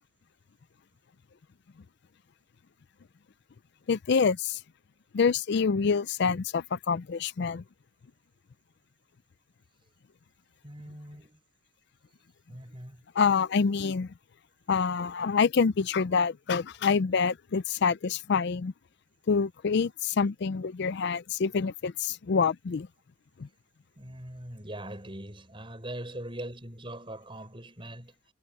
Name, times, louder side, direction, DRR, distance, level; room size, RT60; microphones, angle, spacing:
voice 1, 3.9-4.6 5.1-7.6 13.2-14.1 14.7-18.7 19.3-22.9 23.4-23.5, left 5 dB, 55° left, 0.4 m, -26 dB
voice 2, 10.6-11.4 12.5-13.0 24.0-28.3, right 1 dB, 25° right, 6.1 m, -41 dB
head